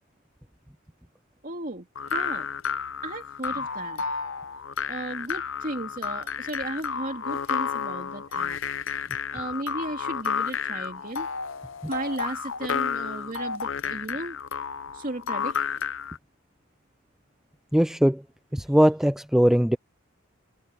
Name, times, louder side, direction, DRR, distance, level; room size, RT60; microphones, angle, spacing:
voice 1, 1.4-2.5 3.0-4.0 4.9-8.6 9.3-11.3 11.9-14.4 14.9-15.6, right 2 dB, 45° right, 2.5 m, -35 dB
sound 1, 1.9-16.2, left 6 dB, 70° left, 0.7 m, -31 dB
voice 2, 17.7-18.2 18.5-19.8, equal, ahead, 0.3 m, -20 dB
head